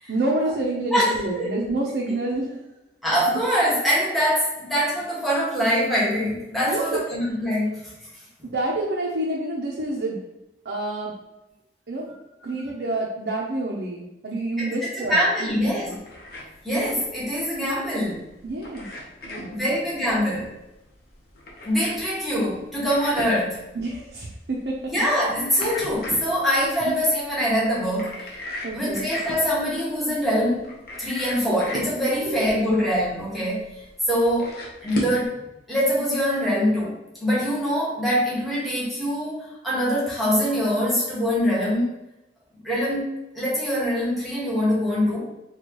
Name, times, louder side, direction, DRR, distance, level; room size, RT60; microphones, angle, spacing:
voice 1, 0.1-2.6 6.7-7.1 8.5-10.2 10.6-11.1 11.9-12.1 12.4-16.0 18.4-18.9 19.2-19.8 23.7-24.9 26.8-27.0 28.6-29.1 31.5-31.6 32.3-32.4, right 2 dB, 65° right, -2 dB, 0.5 m, -28 dB
voice 2, 0.9-1.5 3.0-7.8 14.6-15.9 16.6-18.2 19.5-20.5 21.6-23.6 24.9-28.3 28.7-33.7 34.1-35.4 35.7-41.9 42.6-45.3, equal, ahead, -8 dB, 1.1 m, -24 dB
sound 1, 15.8-35.3, left 1 dB, 60° left, 0.8 m, -38 dB
4.4 x 2.3 x 2.9 m, 0.91 s
head